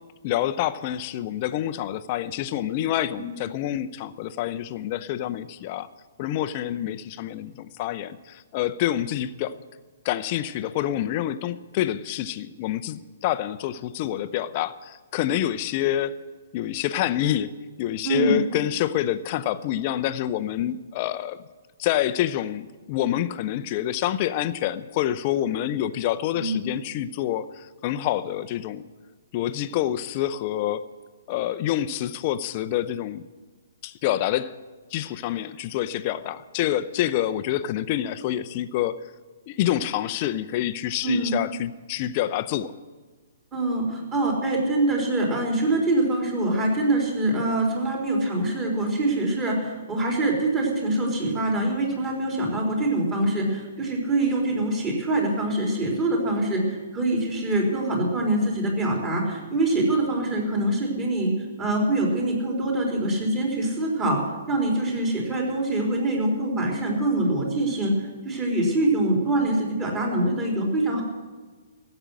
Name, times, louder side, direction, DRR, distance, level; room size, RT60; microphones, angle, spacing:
voice 1, 0.2-5.9 6.2-9.6 10.0-16.2 16.5-17.5 17.8-21.4 21.8-28.9 29.3-30.9 31.3-33.3 33.8-34.5 34.9-39.0 39.5-42.7, left 12 dB, 35° left, 13 dB, 0.6 m, -27 dB
voice 2, 18.0-18.4 26.4-26.6 41.0-41.4 43.5-61.3 61.6-64.2 64.5-67.9 68.2-71.0, right 2 dB, 25° right, -1 dB, 4.0 m, -24 dB
14.5 x 7.9 x 9.9 m, 1.3 s
figure-of-eight pair, 120°, 0 cm